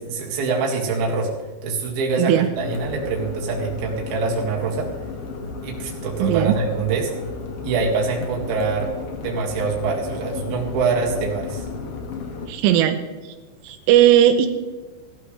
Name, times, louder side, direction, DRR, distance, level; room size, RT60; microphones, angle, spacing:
voice 1, 0.1-1.3 1.6-4.9 5.6-7.1 7.6-8.9 9.2-11.7, right 4 dB, 55° right, -1 dB, 3.6 m, -24 dB
voice 2, 2.2-2.5 6.2-6.5 12.5-13.0 13.6-14.5, right 11 dB, 85° right, 7 dB, 3.4 m, -17 dB
sound 1, 2.5-12.5, left 4 dB, 85° left, 1.3 m, -34 dB
18.0 x 12.5 x 3.3 m, 1.3 s
omnidirectional pair, 5.7 m